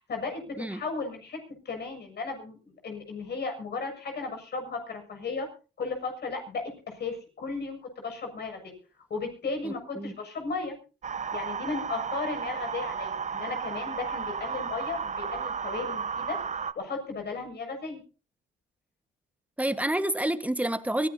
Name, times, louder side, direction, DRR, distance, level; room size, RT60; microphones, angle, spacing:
voice 1, 0.0-1.4 1.7-5.5 5.8-8.7 9.1-10.8 11.3-18.0, left 4 dB, 55° left, 4 dB, 7.2 m, -35 dB
voice 2, 9.6-10.1 19.6-21.1, right 1 dB, 5° right, 10 dB, 1.6 m, -29 dB
sound 1, 11.0-16.7, right 6 dB, 35° right, 1.0 m, -33 dB
23.5 x 16.5 x 2.9 m, 0.36 s
cardioid pair, 90°, 20 cm